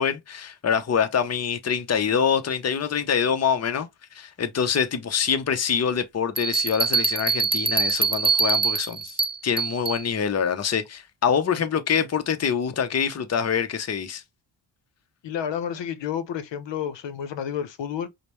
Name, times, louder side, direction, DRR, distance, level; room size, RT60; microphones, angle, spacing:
voice 1, 0.0-3.9 4.1-14.2, left 7 dB, 35° left, 0.7 m, -25 dB
sound 1, 6.4-10.0, right 5 dB, 15° right, 0.5 m, -24 dB
voice 2, 15.2-18.1, left 8 dB, 80° left, 0.7 m, -30 dB
5.0 x 2.1 x 3.0 m
cardioid pair, 65°, 43 cm